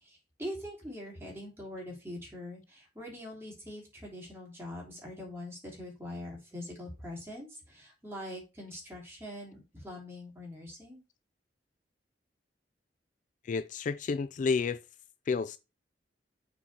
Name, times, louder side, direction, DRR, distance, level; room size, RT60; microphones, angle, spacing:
voice 1, 0.0-11.0, left 1 dB, 15° right, 3.3 m, -43 dB
voice 2, 13.5-14.8 15.3-15.6, left 5 dB, 45° left, 0.3 m, -30 dB
7.0 x 4.3 x 4.3 m
head